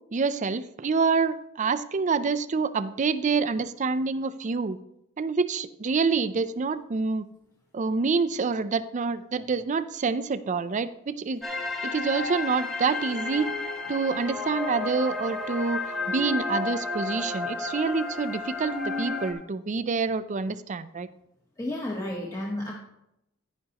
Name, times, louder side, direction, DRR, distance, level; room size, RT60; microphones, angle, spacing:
voice 1, 0.1-4.8 5.2-7.3 7.7-11.4 11.8-13.5 13.9-15.8 16.1-21.1, right 4 dB, 35° right, 13 dB, 0.4 m, -27 dB
sound 1, 11.4-19.3, left 3 dB, ahead, 1.4 m, -32 dB
voice 2, 21.6-22.7, left 1 dB, 15° left, -3 dB, 1.1 m, -32 dB
11.0 x 10.0 x 2.9 m, 0.83 s
head